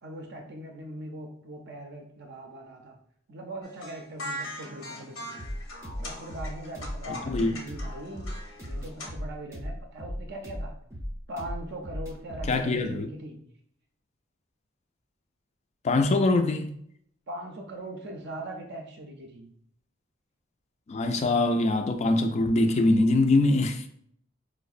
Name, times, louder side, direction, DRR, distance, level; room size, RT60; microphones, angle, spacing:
voice 1, 0.0-3.0 3.3-5.4 6.0-8.3 8.6-10.8 11.3-13.4 17.3-19.5, right 1 dB, 55° right, 0.5 m, -41 dB
sound 1, 3.6-9.1, left 1 dB, 85° left, 0.8 m, -40 dB
sound 2, 5.4-12.6, equal, 15° right, 0.6 m, -37 dB
voice 2, 7.1-7.5 12.5-13.1 15.8-16.7 20.9-23.9, left 2 dB, 35° left, 0.3 m, -23 dB
4.6 x 2.0 x 2.4 m
head